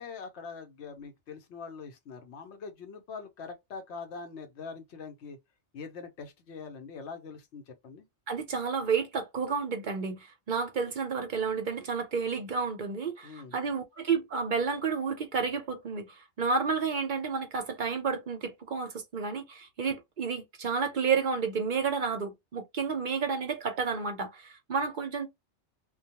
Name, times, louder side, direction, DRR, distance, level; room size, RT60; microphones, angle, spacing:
voice 1, 0.0-5.4 5.7-8.1 13.2-13.6, left 5 dB, 70° left, 1.0 m, -43 dB
voice 2, 8.3-25.3, right 5 dB, 55° right, 0.6 m, -31 dB
2.3 x 2.2 x 2.7 m
omnidirectional pair, 1.2 m